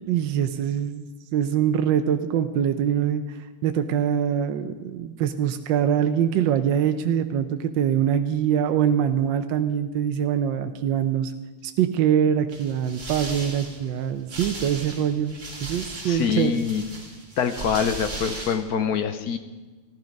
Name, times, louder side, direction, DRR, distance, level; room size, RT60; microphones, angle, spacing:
voice 1, 0.1-1.1 1.3-3.4 3.6-11.3 11.6-15.4 15.6-16.5, right 9 dB, 70° right, 7 dB, 1.3 m, -23 dB
sound 1, 12.5-18.6, right 2 dB, 35° right, 3.1 m, -37 dB
voice 2, 16.0-16.9 17.4-19.4, left 7 dB, 65° left, 9 dB, 1.0 m, -25 dB
15.0 x 12.5 x 5.2 m, 1.3 s
omnidirectional pair, 2.3 m